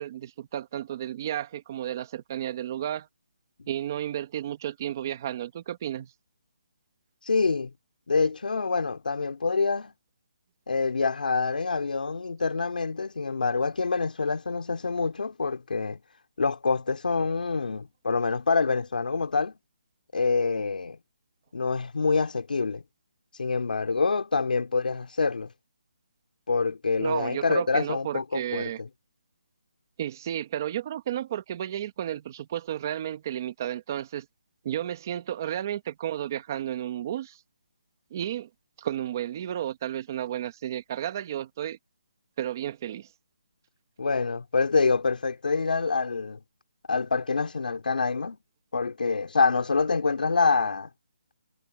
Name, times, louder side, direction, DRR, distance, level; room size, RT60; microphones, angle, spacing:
voice 1, 0.0-3.0 3.7-6.0 27.0-28.8 30.0-34.2 34.6-37.3 38.1-38.5 38.8-41.8 42.4-43.0, right 11 dB, 20° right, 1.0 m, -32 dB
voice 2, 7.3-7.7 8.1-9.9 10.7-16.0 16.4-19.5 20.1-21.0 21.5-22.8 23.4-25.5 26.5-28.9 44.0-46.4 46.9-48.4 48.7-50.9, left 4 dB, 70° left, 3.7 m, -26 dB
hypercardioid pair, 180°, 5 cm